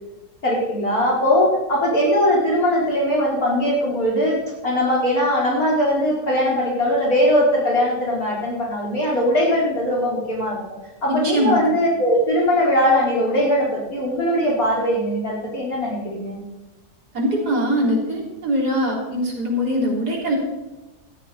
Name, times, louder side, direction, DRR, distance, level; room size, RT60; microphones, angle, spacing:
voice 1, 0.4-10.6 11.0-16.4, equal, 60° left, -3 dB, 4.8 m, -20 dB
voice 2, 11.1-11.6 17.1-20.4, equal, 75° right, -2 dB, 4.3 m, -22 dB
17.0 x 13.0 x 4.3 m, 1.1 s
omnidirectional pair, 1.7 m